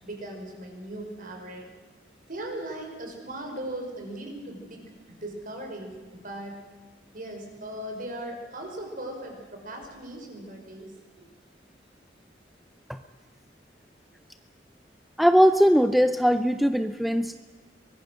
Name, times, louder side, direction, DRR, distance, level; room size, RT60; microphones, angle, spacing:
voice 1, 0.0-1.7 2.3-6.6 7.1-11.3, right 1 dB, 50° right, 3 dB, 5.4 m, -38 dB
voice 2, 15.2-17.4, equal, ahead, 9 dB, 0.5 m, -20 dB
24.0 x 20.5 x 6.4 m, 1.4 s
head